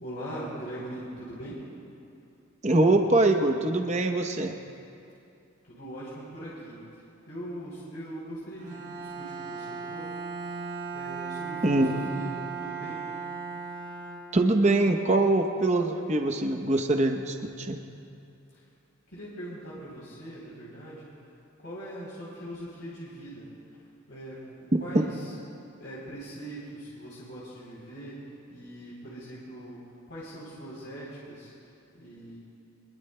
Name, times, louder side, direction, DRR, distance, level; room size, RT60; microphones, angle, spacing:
voice 1, 0.0-1.6 5.7-6.8 7.3-10.1 10.9-12.3 12.6-13.0 19.1-21.1 21.6-23.5 24.1-25.1 25.8-28.1 28.5-29.8 30.1-31.5 31.9-32.4, right 1 dB, 65° left, -8 dB, 3.4 m, -41 dB
voice 2, 2.6-4.5 11.6-11.9 14.3-17.8 24.9-25.0, right 2 dB, 30° right, 4 dB, 0.8 m, -23 dB
Bowed string instrument, 8.6-14.7, right 5 dB, 85° right, 3.9 m, -37 dB
24.5 x 21.5 x 2.2 m, 2.6 s
head